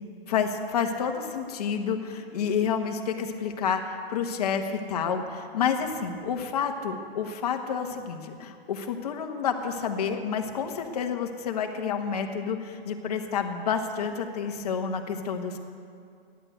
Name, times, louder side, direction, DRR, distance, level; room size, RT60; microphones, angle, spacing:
voice 1, 0.3-15.6, left 6 dB, 40° left, 4 dB, 1.4 m, -29 dB
14.5 x 11.0 x 7.9 m, 2.3 s
hypercardioid pair, 175°, 30 cm